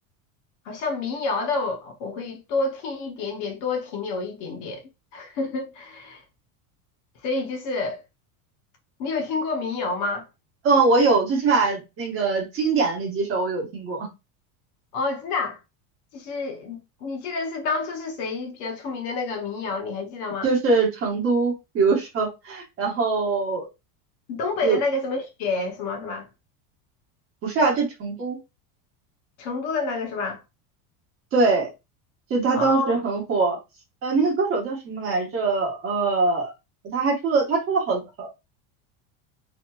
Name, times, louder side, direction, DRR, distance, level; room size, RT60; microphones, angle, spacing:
voice 1, 0.7-4.8 5.1-6.2 7.2-8.0 9.0-10.2 14.9-15.6 16.1-20.5 24.3-26.3 29.4-30.4 32.5-32.9, left 3 dB, 40° left, 0.8 m, -28 dB
voice 2, 10.6-14.1 20.4-23.7 24.6-24.8 27.4-28.4 31.3-31.7 32.3-33.6 34.0-36.5 36.9-38.3, right 4 dB, 30° right, 1.0 m, -22 dB
2.9 x 2.4 x 2.3 m
supercardioid pair, 170°, 43 cm